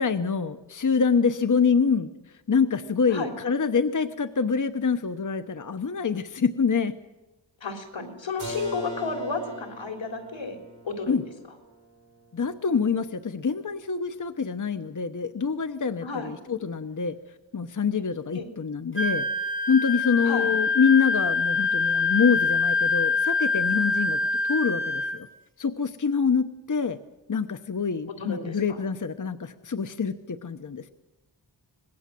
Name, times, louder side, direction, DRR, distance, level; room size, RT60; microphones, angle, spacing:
voice 1, 0.0-2.1 2.5-6.9 11.1-11.2 12.3-17.2 17.5-19.2 19.7-24.2 24.5-25.3 25.6-27.0 27.3-30.9, left 5 dB, 45° left, 10 dB, 1.0 m, -25 dB
voice 2, 7.6-10.6 10.8-11.2 16.0-16.3 18.3-18.4 20.2-20.5 28.2-28.8, left 4 dB, 85° left, 4 dB, 3.8 m, -32 dB
Keyboard (musical), 8.4-14.0, equal, 40° right, 6.1 m, -42 dB
Wind instrument woodwind instrument, 19.0-25.2, left 4 dB, 25° left, 2.9 m, -25 dB
25.0 x 20.5 x 7.6 m, 1.1 s
wide cardioid pair, 75°, 44 cm